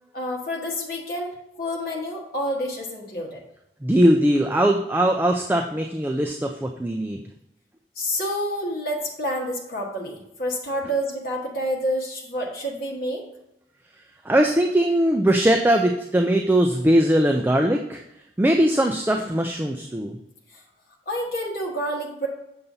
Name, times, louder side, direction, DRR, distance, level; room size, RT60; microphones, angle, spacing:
voice 1, 0.1-1.3 1.6-3.4 7.9-13.2 20.5-20.6 21.1-22.3, equal, 55° left, -2 dB, 1.4 m, -28 dB
voice 2, 3.8-7.2 14.2-18.0 18.4-20.2, right 1 dB, 10° right, 3 dB, 0.3 m, -20 dB
7.1 x 6.7 x 2.7 m, 0.86 s
head